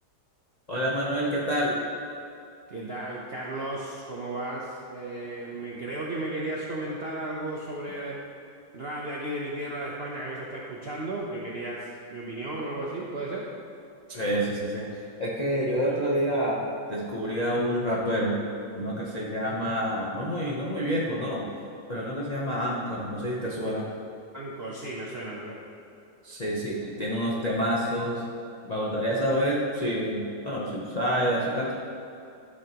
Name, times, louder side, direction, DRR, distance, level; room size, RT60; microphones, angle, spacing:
voice 1, 0.7-1.8 14.1-18.4 18.8-21.5 21.9-23.9 26.2-28.2 28.7-31.7, equal, 45° left, -5 dB, 0.5 m, -28 dB
voice 2, 2.7-8.2 8.7-13.5 15.8-16.0 24.3-25.6, right 1 dB, 60° right, -4 dB, 0.6 m, -34 dB
12.5 x 6.4 x 3.0 m, 2.7 s
omnidirectional pair, 2.1 m